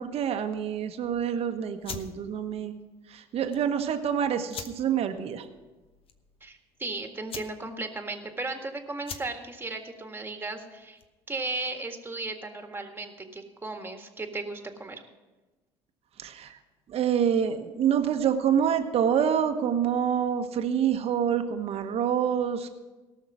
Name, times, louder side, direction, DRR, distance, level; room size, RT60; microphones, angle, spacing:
voice 1, 0.0-2.8 3.1-5.5 16.2-16.6 16.9-22.7, right 8 dB, 50° right, 7 dB, 1.1 m, -27 dB
sound 1, 1.8-11.3, left 6 dB, 45° left, 1.1 m, -45 dB
voice 2, 6.4-11.0 11.3-15.0, right 2 dB, 15° right, 5 dB, 1.8 m, -36 dB
17.5 x 6.5 x 6.1 m, 1.2 s
hypercardioid pair, 75°, 13 cm